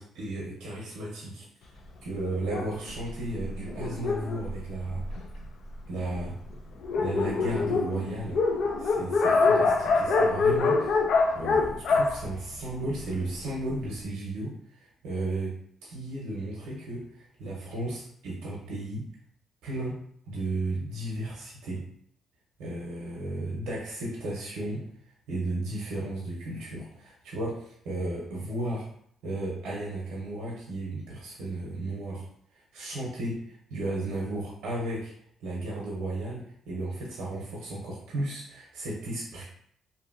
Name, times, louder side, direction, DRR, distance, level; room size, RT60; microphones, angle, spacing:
voice 1, 0.0-1.5 2.0-5.0 5.9-6.4 7.0-8.4 8.8-10.9 11.3-19.0 19.6-20.0 20.2-21.8 22.6-24.8 25.3-28.9 29.2-32.3 32.7-35.1 35.4-39.4, right 2 dB, 85° right, -4 dB, 0.7 m, -34 dB
Dog, 2.4-5.4 6.1-6.2 6.5-6.6 6.8-13.2, left 4 dB, 70° left, 0.4 m, -25 dB
2.7 x 2.7 x 2.6 m, 0.66 s
cardioid pair, 90°, 0 cm